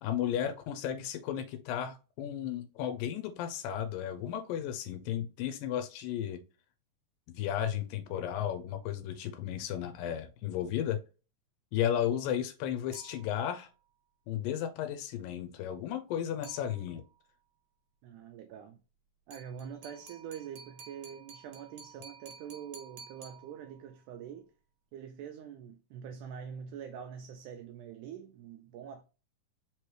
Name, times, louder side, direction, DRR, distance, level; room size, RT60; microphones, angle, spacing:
voice 1, 0.0-6.4 7.3-11.0 11.7-13.7 14.3-17.0, left 10 dB, 80° left, 2.2 m, -34 dB
sound 1, 12.9-13.7 16.4-17.2 19.3-24.0, right 5 dB, 65° right, 1.8 m, -53 dB
voice 2, 18.0-18.8 19.3-24.5 24.9-29.0, right 8 dB, 85° right, 1.8 m, -45 dB
5.2 x 3.0 x 3.1 m
omnidirectional pair, 4.1 m